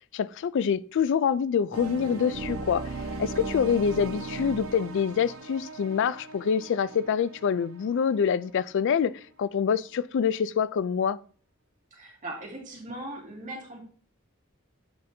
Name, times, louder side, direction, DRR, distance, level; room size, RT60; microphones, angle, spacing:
voice 1, 0.1-2.9 3.2-11.2, left 7 dB, 60° left, 0.3 m, -26 dB
sound 1, 1.7-8.6, right 3 dB, 70° right, 0.9 m, -38 dB
voice 2, 11.9-13.8, right 1 dB, 40° right, 2.1 m, -39 dB
7.9 x 5.1 x 2.7 m
head